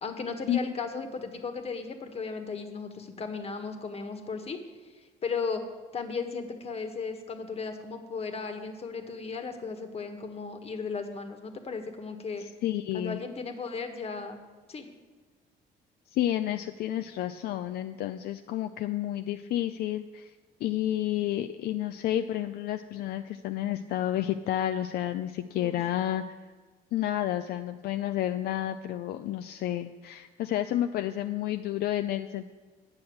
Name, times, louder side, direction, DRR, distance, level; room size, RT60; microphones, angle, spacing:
voice 1, 0.0-4.6 5.2-5.6 5.9-12.4 12.9-14.4 14.7-14.9 25.5-25.8, left 4 dB, 35° left, 6 dB, 1.4 m, -35 dB
voice 2, 12.4-13.2 16.1-20.3 20.6-26.4 26.9-32.5, left 12 dB, 65° left, 8 dB, 0.5 m, -30 dB
9.6 x 6.3 x 8.6 m, 1.4 s
cardioid pair, 110°, 17 cm